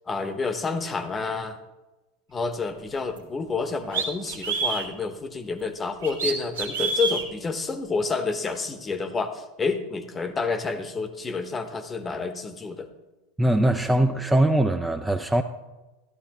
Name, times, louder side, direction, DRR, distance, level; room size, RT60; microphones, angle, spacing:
voice 1, 0.1-1.6 2.3-12.9, left 4 dB, 20° left, 11 dB, 0.9 m, -29 dB
sound 1, 3.2-3.3 3.9-4.9 6.0-7.2, right 4 dB, 75° right, 1.4 m, -27 dB
voice 2, 13.4-15.4, right 1 dB, 5° right, 6 dB, 0.4 m, -21 dB
12.5 x 11.5 x 2.9 m, 1.1 s
figure-of-eight pair, 85°, 0 cm